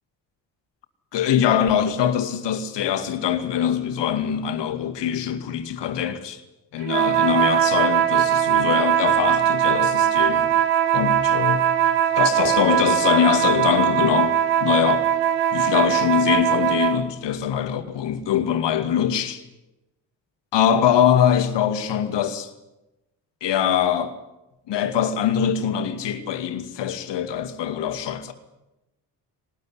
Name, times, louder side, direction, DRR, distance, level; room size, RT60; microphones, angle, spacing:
voice 1, 1.1-6.4 6.7-10.6 10.9-11.6 12.2-15.1 15.5-19.4 20.5-22.5 23.4-24.2 24.7-28.3, left 9 dB, 55° left, 2.3 m, -23 dB
sound 1, 6.8-17.0, right 9 dB, 80° right, 1.5 m, -20 dB
20.0 x 19.0 x 9.8 m
figure-of-eight pair, 45°, 49 cm